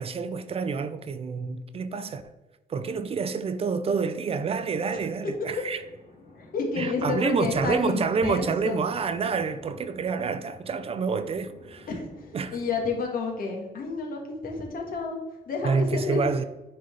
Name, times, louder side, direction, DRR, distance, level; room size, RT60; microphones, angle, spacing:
voice 1, 0.0-2.2 2.7-5.8 6.8-11.9 12.3-12.6 15.6-16.4, right 5 dB, 35° right, 0.4 m, -28 dB
sound 1, 4.4-12.9, left 2 dB, 35° left, 2.0 m, -50 dB
voice 2, 6.4-8.8 11.9-12.3 12.5-15.2 15.4-16.2, left 4 dB, 60° left, 1.5 m, -30 dB
9.3 x 4.0 x 3.3 m
cardioid pair, 145°, 17 cm